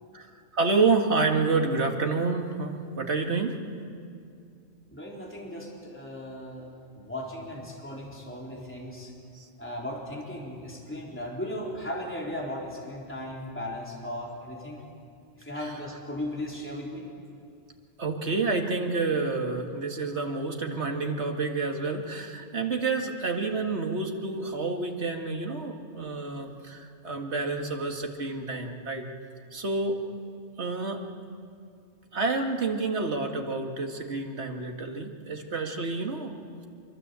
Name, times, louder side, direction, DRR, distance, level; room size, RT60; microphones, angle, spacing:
voice 1, 0.5-3.6 9.3-9.5 15.5-15.7 18.0-29.1 29.5-30.0 30.6-31.1 32.1-36.3, right 3 dB, 70° right, 3 dB, 2.3 m, -29 dB
voice 2, 4.9-9.1 9.6-14.8 15.4-17.0, left 1 dB, 10° left, -3 dB, 3.9 m, -37 dB
25.5 x 23.5 x 8.3 m, 2.4 s
omnidirectional pair, 1.2 m